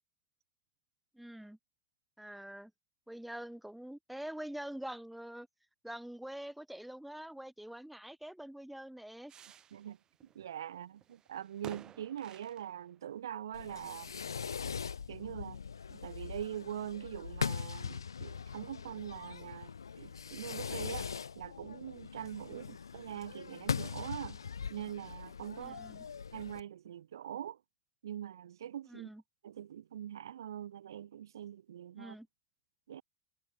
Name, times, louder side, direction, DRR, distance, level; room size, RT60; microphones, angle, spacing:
voice 1, 1.1-1.6 2.2-2.7 3.1-5.5 5.8-9.3 22.5-22.7 25.6-26.1 28.9-29.2 31.9-32.3, right 1 dB, 5° right, 1.8 m, -45 dB
sound 1, 9.3-13.2 13.8-13.9 14.1-14.7 15.1-15.5, right 9 dB, 30° right, 0.9 m, -54 dB
voice 2, 10.3-14.1 15.1-15.6 15.9-21.1 21.3-24.4 24.7-25.8 26.3-27.6 28.0-29.1 29.4-32.2 32.9-33.0, right 10 dB, 70° right, 0.8 m, -43 dB
Fireworks, 13.5-26.6, left 6 dB, 80° left, 0.5 m, -41 dB
figure-of-eight pair, 80°, 2 cm